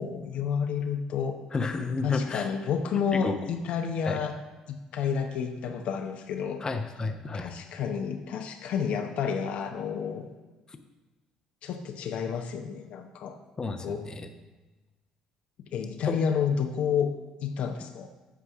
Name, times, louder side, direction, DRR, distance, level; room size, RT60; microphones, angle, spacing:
voice 1, 0.0-1.4 2.0-4.4 4.7-6.6 7.3-10.3 11.6-13.4 13.8-14.1 15.7-17.1 17.4-18.1, left 7 dB, 65° left, 5 dB, 0.8 m, -30 dB
voice 2, 1.5-2.5 3.1-3.4 4.0-4.2 6.6-7.5 13.6-14.3 16.1-16.2, left 3 dB, 30° left, 7 dB, 0.8 m, -31 dB
8.2 x 4.7 x 6.1 m, 1.2 s
hypercardioid pair, 60°, 2 cm